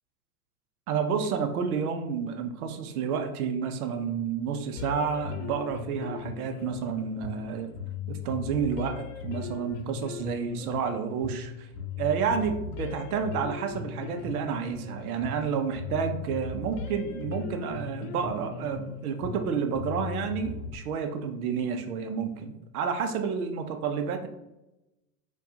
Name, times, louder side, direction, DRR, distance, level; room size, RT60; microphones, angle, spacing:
voice 1, 0.9-7.7 8.1-11.7 12.0-24.3, right 6 dB, 70° right, 7 dB, 0.7 m, -30 dB
sound 1, 4.8-20.8, left 6 dB, 55° left, 0.6 m, -38 dB
4.3 x 2.4 x 2.8 m, 0.91 s
hypercardioid pair, 105°, 45 cm